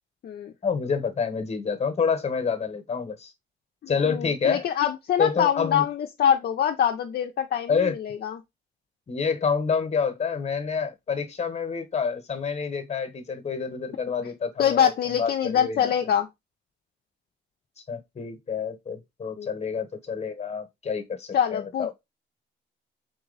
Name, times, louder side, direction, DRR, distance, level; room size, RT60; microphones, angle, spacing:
voice 1, 0.6-3.3 3.9-4.6 5.2-5.8 7.7-7.9 9.1-15.9 17.9-21.9, left 5 dB, 35° left, 1.1 m, -28 dB
voice 2, 3.8-8.4 14.6-16.3 19.4-19.5 21.3-21.9, left 9 dB, 55° left, 0.5 m, -24 dB
3.9 x 2.9 x 3.9 m
cardioid pair, 90°, 20 cm